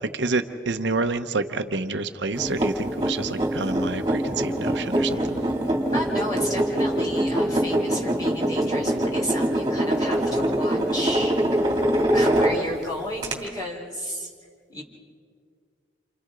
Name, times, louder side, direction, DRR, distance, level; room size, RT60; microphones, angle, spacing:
voice 1, 0.0-5.4, right 3 dB, 75° right, 8 dB, 0.9 m, -28 dB
sound 1, 2.3-12.8 13.2-13.3, right 1 dB, 20° right, 2.6 m, -24 dB
voice 2, 5.9-11.4 12.1-14.3 14.7-14.8, equal, 20° left, -3 dB, 4.0 m, -32 dB
29.0 x 28.5 x 3.8 m, 2.1 s
head